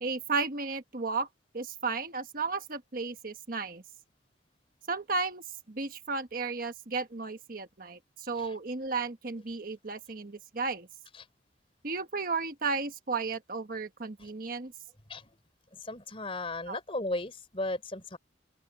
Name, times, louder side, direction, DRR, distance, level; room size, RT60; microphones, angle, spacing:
voice 1, 0.0-1.3 1.5-3.8 4.9-10.9 11.8-14.7 16.7-16.8, right 4 dB, 50° right, 1.2 m, -34 dB
voice 2, 15.7-18.2, left 2 dB, 30° left, 3.9 m, -36 dB
open air
head